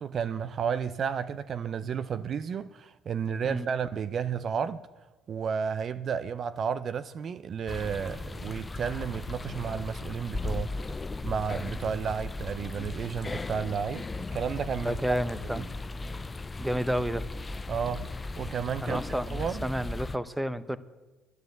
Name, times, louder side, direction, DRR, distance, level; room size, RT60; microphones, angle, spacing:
voice 1, 0.0-4.9 5.3-10.7 11.2-14.1 14.3-15.2 15.4-15.6 17.7-19.0 19.3-19.6, right 7 dB, 50° right, 0.5 m, -32 dB
sound 1, 7.7-20.2, left 3 dB, 25° left, 0.4 m, -37 dB
voice 2, 14.8-15.6 16.6-17.3 18.8-20.8, equal, 5° right, 0.8 m, -30 dB
11.0 x 9.3 x 7.9 m
supercardioid pair, 70°, 0 cm